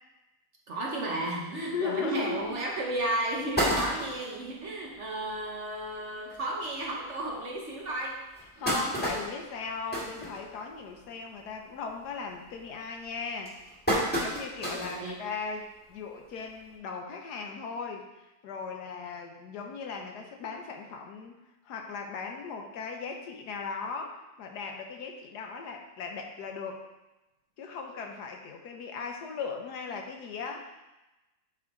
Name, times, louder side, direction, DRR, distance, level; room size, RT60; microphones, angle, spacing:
voice 1, 0.7-8.2 8.6-8.9 14.7-15.2, right 1 dB, 50° right, -2 dB, 1.1 m, -33 dB
voice 2, 1.5-2.6 8.6-13.6 14.2-18.1 18.4-21.3 21.6-26.8 27.6-30.7, left 5 dB, 75° left, 3 dB, 1.3 m, -38 dB
sound 1, 2.4-2.5 3.0-3.1 3.3-4.4 4.9-5.0 5.3-5.4 5.7-5.9 6.6-6.7 7.3-7.4 8.1-10.9 11.3-11.6 12.0-12.4 13.0-15.0 15.5-15.6 16.7-16.8, right 1 dB, 5° left, 1.4 m, -31 dB
9.5 x 3.5 x 3.7 m, 1.0 s
omnidirectional pair, 1.8 m